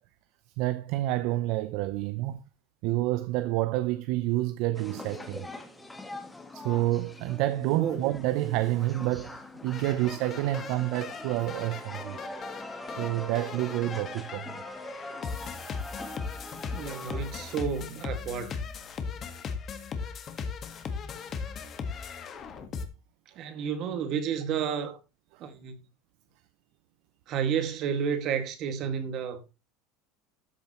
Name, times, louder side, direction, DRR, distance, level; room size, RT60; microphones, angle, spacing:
voice 1, 0.6-2.4 2.8-5.5 6.5-12.2 13.0-14.5, right 16 dB, 65° right, 0.6 m, -28 dB
sound 1, 4.7-17.6, left 2 dB, 10° left, 1.5 m, -42 dB
sound 2, 9.7-22.9, left 5 dB, 35° left, 1.6 m, -38 dB
voice 2, 16.7-18.6 23.4-25.0 25.4-25.8 27.3-29.5, right 7 dB, 50° right, 2.0 m, -31 dB
13.0 x 7.1 x 3.1 m
supercardioid pair, 140°, 0 cm